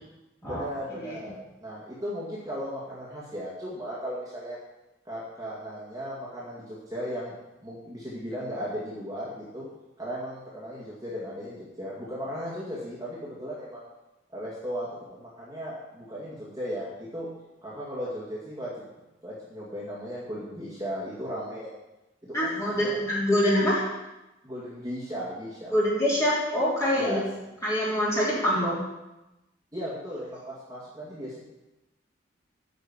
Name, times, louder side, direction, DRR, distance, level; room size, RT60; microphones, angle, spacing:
voice 1, 0.4-4.6 5.1-9.7 10.0-13.8 14.3-17.3 17.6-18.9 19.2-21.7 22.2-23.0 24.4-25.7 27.0-27.2 29.7-31.4, equal, 20° right, -8 dB, 2.1 m, -36 dB
voice 2, 22.3-23.8 25.7-27.2 27.6-28.8, equal, 15° left, -8 dB, 3.4 m, -25 dB
9.3 x 5.5 x 7.2 m, 1.0 s
head